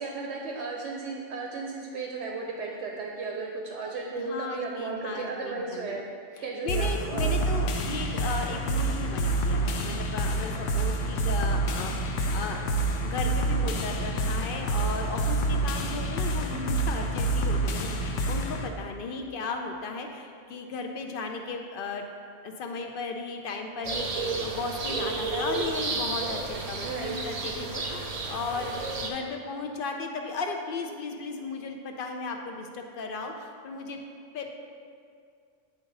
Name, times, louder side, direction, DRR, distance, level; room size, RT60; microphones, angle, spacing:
voice 1, 0.0-6.0 6.4-7.3 26.8-27.2, right 4 dB, 75° right, 0 dB, 1.0 m, -34 dB
voice 2, 4.2-6.0 6.4-12.7 13.0-22.0 22.4-28.7 29.0-34.0 34.3-34.5, left 4 dB, 55° left, 3 dB, 0.7 m, -35 dB
sound 1, 6.7-18.7, right 2 dB, 90° left, 1.0 m, -28 dB
sound 2, 23.8-29.1, right 3 dB, 45° right, 0.5 m, -32 dB
9.3 x 3.9 x 4.0 m, 2.3 s
omnidirectional pair, 1.2 m